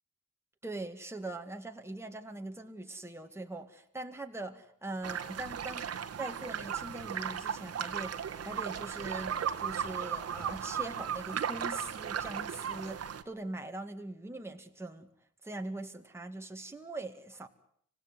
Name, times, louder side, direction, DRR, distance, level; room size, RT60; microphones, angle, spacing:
voice 1, 0.6-5.9 6.2-15.1 15.4-17.5, right 2 dB, 10° right, 4 dB, 2.0 m, -42 dB
sound 1, 5.0-13.2, right 8 dB, 55° right, 1.8 m, -36 dB
26.0 x 17.0 x 9.6 m, 0.67 s
cardioid pair, 90°, 30 cm